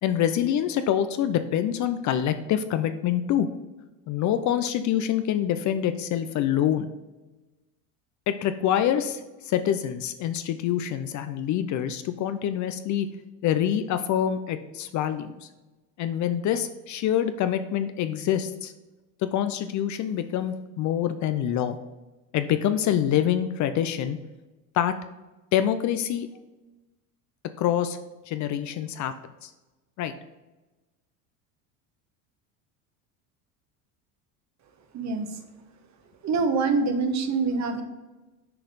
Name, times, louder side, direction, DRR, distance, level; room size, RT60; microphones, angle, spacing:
voice 1, 0.0-3.5 4.1-6.9 8.3-13.1 13.4-15.5 16.0-18.7 19.2-21.8 22.3-24.2 24.7-24.9 25.5-26.3 27.6-28.0 28.3-29.1 29.4-29.5 30.0-30.1, left 10 dB, 45° left, 10 dB, 0.5 m, -26 dB
voice 2, 34.9-35.4 36.2-37.8, right 4 dB, 40° right, 7 dB, 1.0 m, -25 dB
6.5 x 4.1 x 4.0 m, 1.1 s
supercardioid pair, 100°, 43 cm